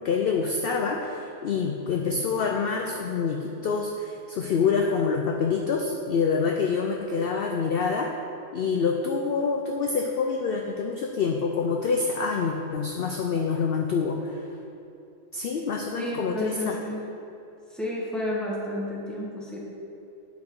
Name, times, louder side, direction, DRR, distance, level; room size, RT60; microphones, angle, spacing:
voice 1, 0.0-8.1 8.5-14.4 15.3-16.8, left 5 dB, 60° left, 2 dB, 0.7 m, -26 dB
voice 2, 16.0-17.0 17.7-19.6, left 1 dB, ahead, -5 dB, 1.6 m, -31 dB
8.5 x 6.5 x 4.7 m, 2.6 s
omnidirectional pair, 1.4 m